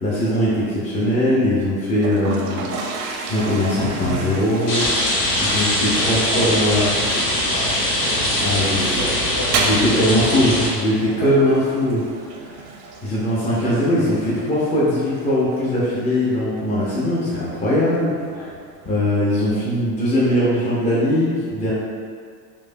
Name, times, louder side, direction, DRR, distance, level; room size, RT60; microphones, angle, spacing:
voice 1, 0.0-2.6 3.3-4.8 5.4-7.0 8.4-8.8 9.6-12.0 12.4-12.5 13.0-18.1 18.9-21.7, left 1 dB, 15° left, -8 dB, 0.5 m, -20 dB
Toilet flush, 1.9-19.0, right 4 dB, 45° right, 0.5 m, -33 dB
Rain, 4.7-10.7, left 1 dB, 75° left, 1.0 m, -21 dB
voice 2, 6.0-10.0 11.0-11.3 18.3-18.5, equal, 40° left, -5 dB, 0.9 m, -32 dB
3.2 x 2.1 x 2.6 m, 2.1 s
hypercardioid pair, 95°, 49 cm